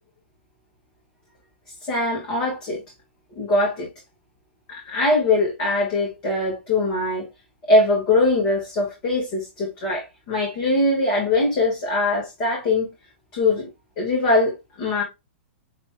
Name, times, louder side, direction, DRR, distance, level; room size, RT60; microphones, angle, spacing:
voice 1, 1.8-2.8 3.4-3.9 4.7-7.3 7.7-12.9 13.3-13.7 14.0-15.0, left 2 dB, 35° left, 1.9 m, -22 dB
6.7 x 3.0 x 2.3 m
figure-of-eight pair, 105°, 6 cm